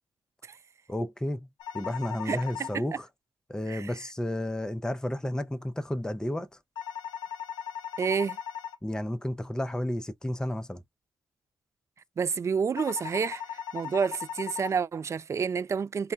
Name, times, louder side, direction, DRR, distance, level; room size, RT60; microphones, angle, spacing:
voice 1, 0.9-1.5 1.7-3.1 3.5-6.5 8.8-10.8, left 1 dB, 10° left, 0.5 m, -32 dB
sound 1, 1.6-2.7 6.7-8.7 12.8-14.7, left 9 dB, 70° left, 0.4 m, -38 dB
voice 2, 2.3-3.0 3.7-3.9 8.0-8.4 12.2-16.1, right 6 dB, 40° right, 0.3 m, -29 dB
2.2 x 2.2 x 3.8 m
hypercardioid pair, 45°, 8 cm